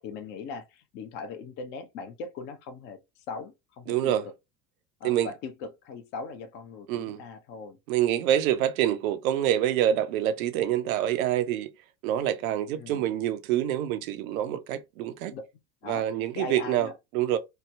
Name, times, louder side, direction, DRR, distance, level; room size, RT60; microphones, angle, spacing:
voice 1, 0.0-3.0 3.3-4.1 5.0-7.8 12.8-13.0 15.3-15.4 15.8-16.1 16.3-16.9, left 4 dB, 25° left, 0.3 m, -39 dB
voice 2, 3.9-4.2 5.0-5.3 6.9-7.2 7.9-11.7 12.0-15.3 15.9-17.4, right 11 dB, 60° right, 0.5 m, -26 dB
3.1 x 2.0 x 2.2 m
figure-of-eight pair, 70°, 50 cm